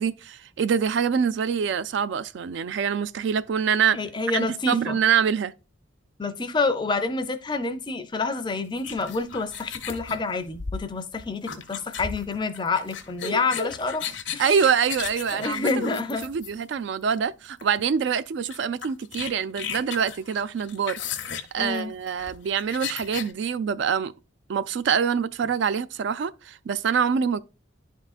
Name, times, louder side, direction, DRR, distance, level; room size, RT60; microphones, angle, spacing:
voice 1, 0.0-4.0 4.3-5.5 14.4-15.9 16.2-21.0 21.5-24.1 24.5-27.4, right 7 dB, 65° right, 0.3 m, -25 dB
voice 2, 3.9-5.0 6.2-14.0 14.3-14.5 15.3-16.3 21.6-21.9, left 3 dB, 25° left, 0.5 m, -28 dB
sound 1, 8.8-16.8 17.6-17.8 18.1-18.2 18.5-23.3, left 6 dB, 70° left, 0.8 m, -35 dB
10.5 x 3.7 x 2.4 m
head